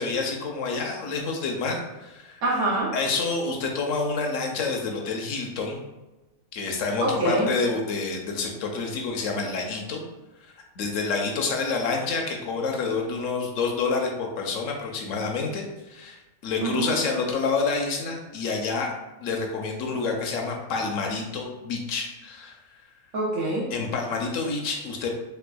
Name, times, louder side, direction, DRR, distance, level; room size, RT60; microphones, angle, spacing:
voice 1, 0.0-2.4 2.9-5.8 6.5-10.0 10.8-18.9 19.2-22.6 23.7-25.1, left 4 dB, 70° left, 1 dB, 0.9 m, -28 dB
voice 2, 2.4-3.0 7.0-7.5 16.6-17.0 23.1-23.7, right 2 dB, 80° right, -4 dB, 1.2 m, -25 dB
3.3 x 3.2 x 2.2 m, 1.1 s
omnidirectional pair, 1.5 m